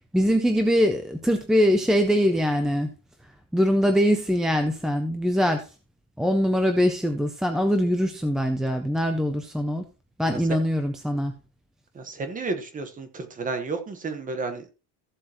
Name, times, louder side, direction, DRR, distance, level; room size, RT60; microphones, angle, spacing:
voice 1, 0.1-2.9 3.5-5.7 6.2-9.8 10.2-11.3, equal, ahead, 4 dB, 0.4 m, -22 dB
voice 2, 11.9-14.7, right 3 dB, 20° right, 8 dB, 1.2 m, -32 dB
14.5 x 7.6 x 3.0 m, 0.30 s
cardioid pair, 180°, 41 cm